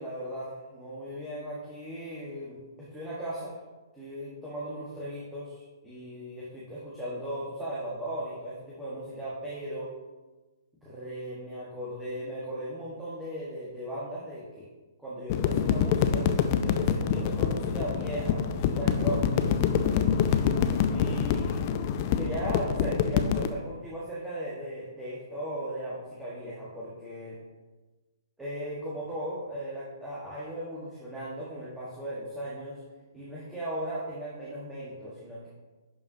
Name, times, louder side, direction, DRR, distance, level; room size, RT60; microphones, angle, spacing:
voice 1, 0.0-3.5 3.9-9.9 10.8-14.7 15.0-16.3 16.6-20.3 20.9-21.6 22.2-27.4 28.4-32.8 33.1-35.5, right 1 dB, 5° right, -8 dB, 1.4 m, -37 dB
sound 1, 15.3-23.5, left 7 dB, 35° left, 0.5 m, -26 dB
11.0 x 4.8 x 2.7 m, 1.2 s
figure-of-eight pair, 125°, 2 cm